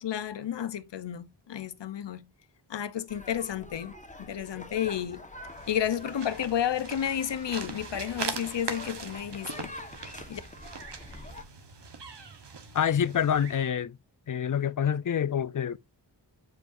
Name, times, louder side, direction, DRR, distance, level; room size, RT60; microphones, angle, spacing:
voice 1, 0.0-2.3 2.7-5.2 5.7-9.7 10.3-10.4, left 9 dB, 80° left, 0.8 m, -32 dB
sound 1, 3.1-11.4, left 1 dB, 15° left, 1.4 m, -46 dB
sound 2, 5.4-13.7, right 5 dB, 70° right, 1.4 m, -41 dB
voice 2, 12.7-14.0 14.3-15.8, left 8 dB, 50° left, 0.6 m, -27 dB
7.9 x 4.7 x 2.6 m
cardioid pair, 50°, 42 cm